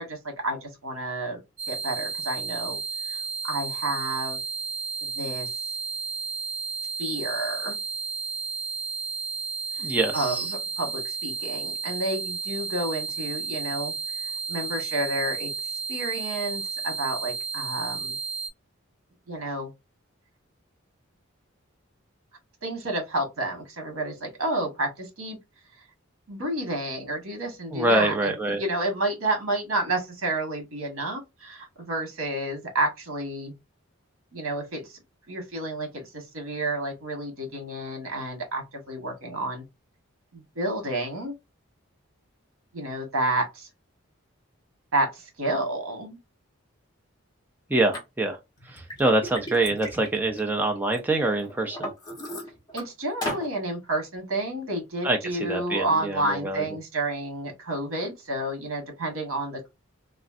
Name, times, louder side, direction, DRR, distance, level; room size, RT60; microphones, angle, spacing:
voice 1, 0.0-1.4 1.7-2.8 3.1-3.2 3.4-4.4 5.0-5.5 7.0-7.8 10.1-15.5 15.9-18.2 19.3-19.7 22.6-25.4 26.3-33.5 34.3-35.0 35.3-39.6 40.3-41.3 42.7-43.7 44.9-46.2 52.7-59.7, right 2 dB, 80° right, 1.4 m, -30 dB
sound 1, 1.6-18.5, right 5 dB, 45° right, 1.5 m, -33 dB
voice 2, 9.8-10.5 27.7-28.6 47.7-48.4 48.7-51.9 55.0-56.6, right 2 dB, 10° right, 0.4 m, -25 dB
Liquid, 47.9-48.0 48.6-51.0 51.4-52.8 53.2-53.5, left 1 dB, 20° left, 1.1 m, -35 dB
3.1 x 2.5 x 2.4 m
head